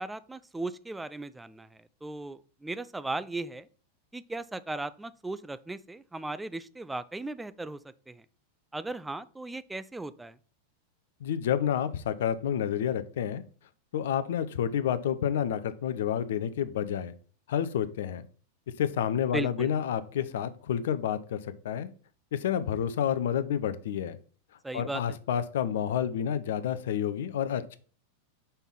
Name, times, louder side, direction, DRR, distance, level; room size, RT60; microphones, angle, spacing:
voice 1, 0.0-3.7 4.1-8.2 8.7-10.4 19.3-19.7 24.6-25.2, right 2 dB, 5° right, 15 dB, 0.4 m, -37 dB
voice 2, 11.2-13.4 13.9-17.1 17.5-18.2 18.8-21.9 22.3-24.2 24.7-27.8, left 9 dB, 60° left, 13 dB, 0.5 m, -29 dB
5.5 x 3.5 x 5.9 m, 0.42 s
figure-of-eight pair, 90°, 0 cm